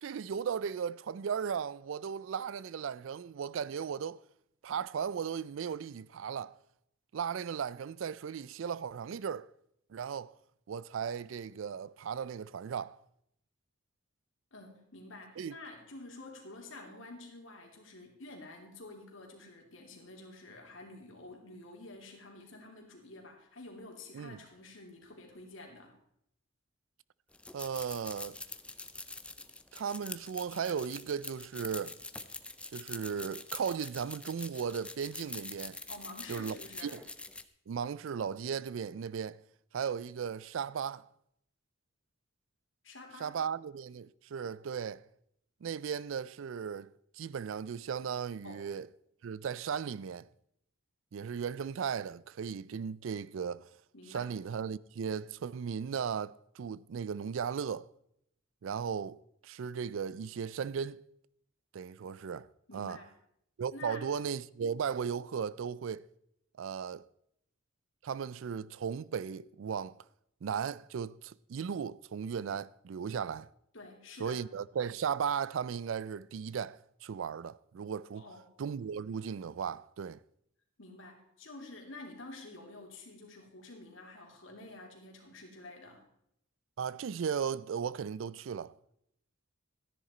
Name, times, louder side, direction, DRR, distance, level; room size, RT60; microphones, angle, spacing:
voice 1, 0.0-4.2 4.6-6.6 7.1-9.5 9.9-10.3 10.7-13.0 15.4-15.5 24.1-24.4 27.5-28.4 29.7-32.0 32.7-35.8 36.3-37.0 37.7-39.4 39.7-41.0 43.2-45.0 45.6-46.9 47.2-48.9 49.2-50.3 51.1-53.7 54.1-57.9 58.6-61.0 61.7-62.5 62.7-63.0 63.6-66.0 66.6-67.0 68.0-70.0 70.4-73.5 74.2-78.3 78.6-80.2 86.8-88.7, right 7 dB, 70° right, 0.4 m, -36 dB
voice 2, 14.5-26.0 35.9-36.9 42.8-43.3 48.4-48.6 53.9-54.3 62.7-63.1 63.7-64.0 73.7-74.4 78.1-78.5 80.8-86.1, left 2 dB, 65° left, 2.8 m, -49 dB
sound 1, 27.3-37.4, left 2 dB, 5° left, 0.5 m, -45 dB
13.0 x 10.5 x 4.3 m
head